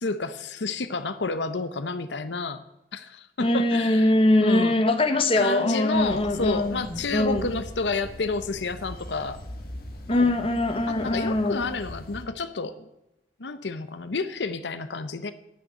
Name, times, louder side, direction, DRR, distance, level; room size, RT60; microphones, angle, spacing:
voice 1, 0.0-2.6 2.9-4.1 4.4-4.8 5.4-9.4 10.1-10.3 10.9-12.9 13.4-15.3, left 3 dB, 80° left, 11 dB, 0.8 m, -30 dB
voice 2, 3.4-7.5 10.1-11.6, left 1 dB, 30° left, 8 dB, 1.1 m, -22 dB
sound 1, 5.9-12.3, left 1 dB, 55° left, 2.0 m, -41 dB
11.0 x 6.4 x 8.8 m, 0.89 s
head